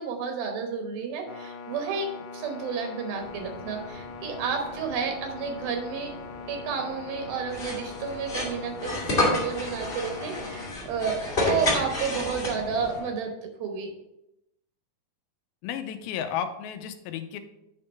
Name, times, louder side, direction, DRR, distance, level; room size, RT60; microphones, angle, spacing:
voice 1, 0.0-2.1 2.3-6.1 6.5-13.9, right 6 dB, 75° right, 4 dB, 2.8 m, -31 dB
sound 1, 1.3-10.7, left 5 dB, 75° left, 2.1 m, -41 dB
sound 2, 3.1-13.1, left 2 dB, 50° left, 1.6 m, -46 dB
sound 3, 7.5-12.9, left 2 dB, 30° left, 1.0 m, -29 dB
voice 2, 15.6-17.4, left 9 dB, 90° left, 8 dB, 2.5 m, -33 dB
8.5 x 3.6 x 5.5 m, 0.87 s
omnidirectional pair, 4.2 m